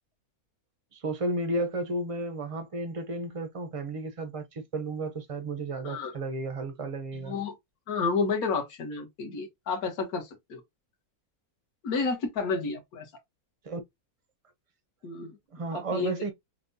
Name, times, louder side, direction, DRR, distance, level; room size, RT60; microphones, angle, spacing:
voice 1, 0.9-7.4 13.6-13.8 15.5-16.3, right 2 dB, 55° right, 0.3 m, -33 dB
voice 2, 7.1-7.5 7.9-10.6 11.8-13.1 15.0-15.4 15.9-16.1, left 4 dB, 75° left, 1.6 m, -30 dB
5.7 x 2.2 x 2.6 m
omnidirectional pair, 1.6 m